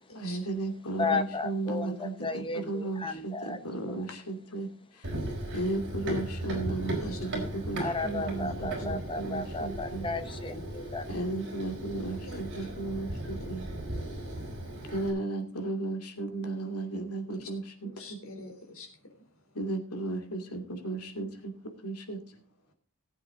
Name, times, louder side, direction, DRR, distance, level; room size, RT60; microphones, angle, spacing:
voice 1, 0.1-4.7 5.0-5.1 5.5-10.1 11.1-13.7 14.9-18.2 19.5-21.5 21.8-22.2, right 2 dB, 85° left, 5 dB, 2.5 m, -35 dB
voice 2, 1.0-4.1 7.8-11.1, left 3 dB, 25° left, 10 dB, 1.0 m, -34 dB
Run, 5.0-15.1, right 1 dB, 55° right, 4.4 m, -37 dB
voice 3, 12.3-12.7 13.9-14.5 17.3-17.5 17.8-18.9, left 2 dB, 65° left, 4 dB, 3.5 m, -46 dB
18.5 x 8.1 x 3.8 m, 0.43 s
head